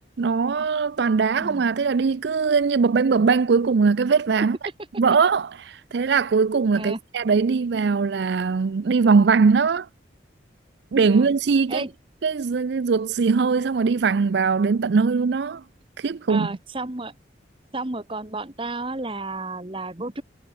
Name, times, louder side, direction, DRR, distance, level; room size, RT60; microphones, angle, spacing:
voice 1, 0.2-4.6 5.0-9.9 10.9-11.8 12.2-15.6 16.0-16.5, right 5 dB, 65° right, 0.4 m, -21 dB
voice 2, 16.3-17.1 17.7-20.2, right 2 dB, 25° right, 1.3 m, -32 dB
head